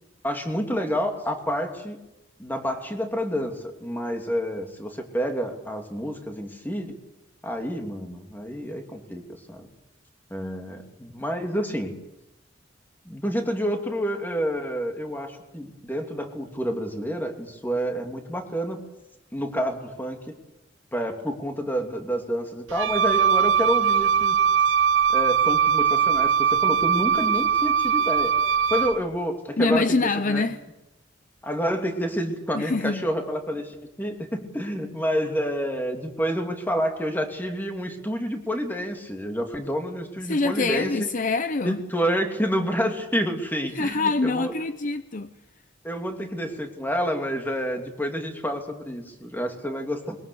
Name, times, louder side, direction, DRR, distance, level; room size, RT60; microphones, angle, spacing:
voice 1, 0.2-2.0 2.4-7.0 7.4-9.2 9.5-9.7 10.3-11.9 13.0-18.8 19.3-20.2 20.9-24.4 25.1-28.3 28.7-30.4 31.4-41.0 41.6-44.5 45.8-50.2, equal, 10° left, 2.7 m, -29 dB
Wind instrument woodwind instrument, 22.7-29.0, right 7 dB, 80° right, 0.8 m, -21 dB
voice 2, 29.6-30.6 32.5-33.0 40.2-41.8 43.7-45.3, left 3 dB, 45° left, 0.7 m, -25 dB
22.5 x 22.0 x 7.0 m
head